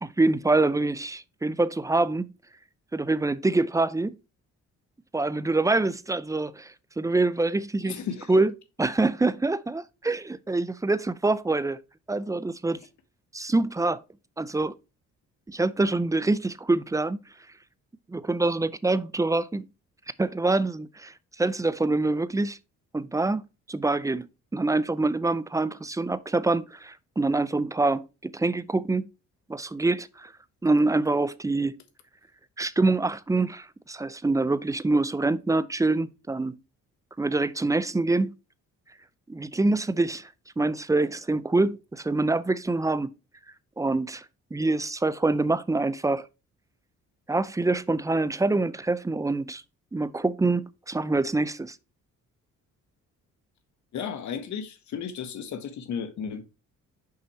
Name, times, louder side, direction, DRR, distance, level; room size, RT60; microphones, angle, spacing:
voice 1, 0.0-2.3 2.9-4.2 5.1-8.0 8.3-8.5 8.8-11.8 12.1-12.8 13.3-14.0 14.4-14.7 15.5-17.2 18.1-19.7 20.2-22.6 22.9-23.4 23.7-24.3 24.5-29.1 29.5-30.3 30.6-31.8 32.6-36.6 37.2-38.3 39.3-40.3 40.6-43.1 43.8-44.3 44.5-46.2 47.3-49.6 49.9-51.8, right 2 dB, 10° right, 0.5 m, -25 dB
voice 2, 7.8-8.3 53.9-56.4, left 7 dB, 70° left, 1.4 m, -34 dB
6.4 x 5.5 x 3.2 m
cardioid pair, 90°, 30 cm